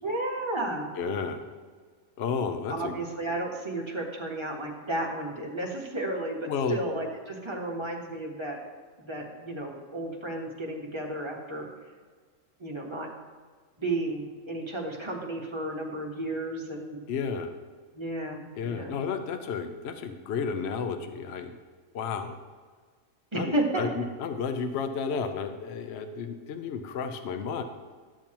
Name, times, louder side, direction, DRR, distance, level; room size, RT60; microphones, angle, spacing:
voice 1, 0.0-0.9 2.7-8.6 9.0-11.6 12.6-13.1 13.8-17.0 17.9-19.0 23.3-23.9, right 2 dB, 25° right, -1 dB, 1.2 m, -33 dB
voice 2, 1.0-1.5 2.2-3.0 6.5-6.8 17.1-17.6 18.6-21.5 21.9-22.4 23.3-27.6, left 5 dB, 60° left, 7 dB, 0.8 m, -32 dB
12.5 x 7.0 x 2.9 m, 1.5 s
omnidirectional pair, 1.4 m